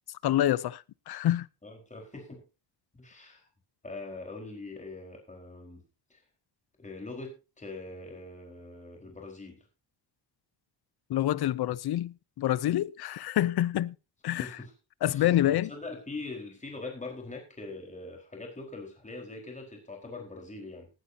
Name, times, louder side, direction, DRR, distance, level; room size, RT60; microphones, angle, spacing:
voice 1, 0.2-1.5 11.1-13.9 14.2-14.6 15.0-15.7, left 13 dB, 60° left, 0.7 m, -27 dB
voice 2, 1.6-2.4 2.9-3.4 3.8-5.8 6.1-6.2 6.8-9.6 14.4-14.7 15.1-20.9, left 3 dB, 15° left, 4.5 m, -42 dB
18.5 x 11.5 x 2.8 m
cardioid pair, 130°, 45 cm